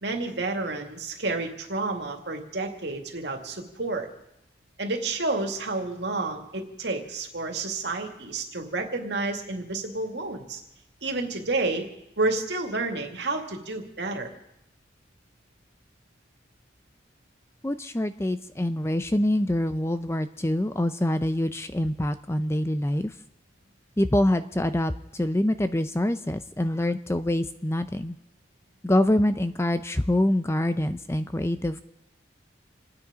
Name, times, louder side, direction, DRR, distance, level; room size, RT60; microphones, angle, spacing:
voice 1, 0.0-4.1 4.8-10.6 11.0-11.9 12.2-14.3, right 3 dB, 65° right, 3 dB, 2.3 m, -30 dB
voice 2, 17.6-23.1 24.0-28.2 28.8-31.8, left 1 dB, 15° left, 11 dB, 0.5 m, -25 dB
28.0 x 9.8 x 5.1 m, 0.82 s
head